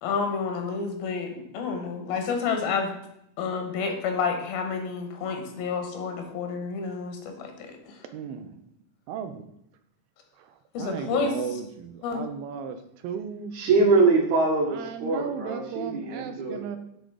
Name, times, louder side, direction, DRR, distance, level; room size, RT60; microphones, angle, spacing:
voice 1, 0.0-2.9 3.4-8.0 10.7-11.3 12.0-12.3, left 5 dB, 85° left, 4 dB, 3.0 m, -29 dB
voice 2, 8.1-8.5 9.1-9.4 10.4-13.5 14.7-16.8, right 7 dB, 85° right, 8 dB, 2.4 m, -36 dB
voice 3, 13.6-16.6, right 3 dB, 65° right, 0 dB, 2.2 m, -23 dB
10.0 x 3.8 x 4.8 m, 0.77 s
omnidirectional pair, 4.2 m